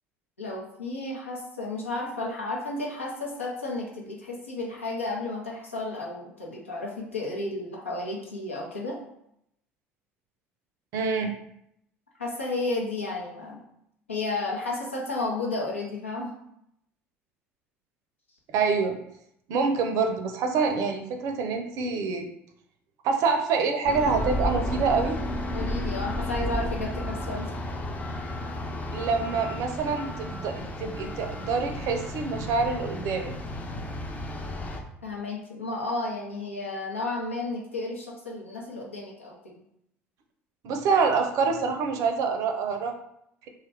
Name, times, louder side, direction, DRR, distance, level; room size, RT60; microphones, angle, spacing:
voice 1, 0.4-9.0 12.2-13.6 14.1-16.3 25.5-27.6 35.0-39.6, left 2 dB, 90° left, -3 dB, 0.7 m, -32 dB
voice 2, 10.9-11.4 18.5-19.0 19.5-22.3 23.0-25.2 28.9-33.3 40.6-42.9, right 4 dB, 55° right, 5 dB, 0.5 m, -26 dB
sound 1, 23.8-34.8, left 1 dB, 20° left, 0.5 m, -32 dB
2.7 x 2.4 x 3.3 m, 0.75 s
figure-of-eight pair, 65°, 7 cm